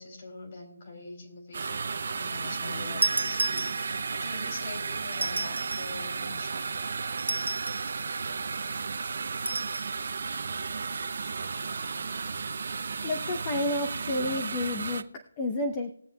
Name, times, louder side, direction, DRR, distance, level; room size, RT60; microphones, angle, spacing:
voice 1, 0.0-6.8, left 2 dB, 40° left, 1 dB, 3.1 m, -44 dB
sound 1, 1.5-15.0, right 5 dB, 55° right, 0.7 m, -34 dB
sound 2, 3.0-4.2 5.1-6.0 7.2-7.9 9.5-9.9, right 2 dB, 90° right, 0.5 m, -31 dB
voice 2, 13.0-15.9, left 2 dB, 20° left, 4 dB, 0.8 m, -30 dB
20.5 x 7.5 x 2.3 m, 0.72 s
figure-of-eight pair, 165°, 0 cm